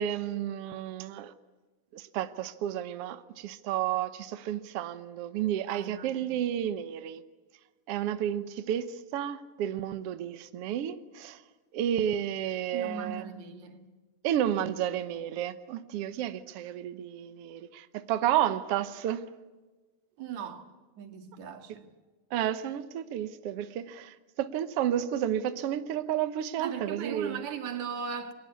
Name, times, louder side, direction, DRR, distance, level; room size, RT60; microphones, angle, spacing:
voice 1, 0.0-1.3 1.9-7.2 7.9-8.9 9.1-11.4 11.7-13.2 14.2-19.2 22.3-27.4, right 10 dB, 80° right, 1.3 m, -31 dB
voice 2, 5.7-6.4 12.7-13.8 20.2-20.7 21.0-21.9 26.6-28.3, right 6 dB, 55° right, 3.1 m, -38 dB
28.5 x 23.0 x 8.6 m
omnidirectional pair, 4.1 m